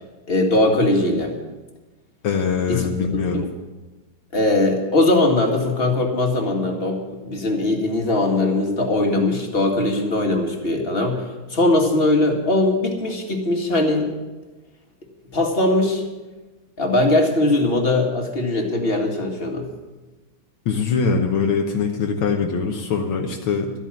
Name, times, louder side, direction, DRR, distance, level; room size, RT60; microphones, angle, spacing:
voice 1, 0.3-1.3 2.7-2.9 4.3-14.1 15.3-16.0 16.8-19.7, left 2 dB, 30° left, 2 dB, 2.1 m, -20 dB
voice 2, 2.2-3.4 20.7-23.7, left 5 dB, 75° left, 2 dB, 1.9 m, -22 dB
13.0 x 9.2 x 7.5 m, 1.2 s
omnidirectional pair, 2.3 m